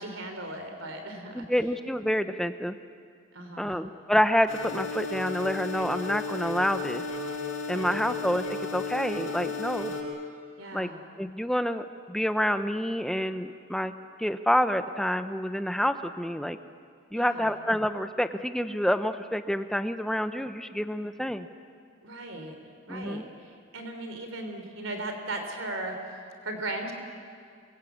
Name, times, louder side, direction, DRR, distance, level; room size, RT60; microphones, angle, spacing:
voice 1, 0.0-1.5 3.3-3.8 7.7-8.1 10.6-11.0 17.1-17.5 22.0-22.6 22.9-26.0 26.4-26.9, right 2 dB, 85° right, 5 dB, 3.6 m, -37 dB
voice 2, 1.3-2.7 3.6-7.0 7.7-9.9 10.7-10.9 11.2-13.9 14.2-16.6 17.1-21.5 22.9-23.2, equal, ahead, 9 dB, 0.7 m, -28 dB
sound 1, 4.5-10.0, left 3 dB, 80° left, 6.7 m, -34 dB
27.5 x 23.0 x 8.5 m, 2.2 s
head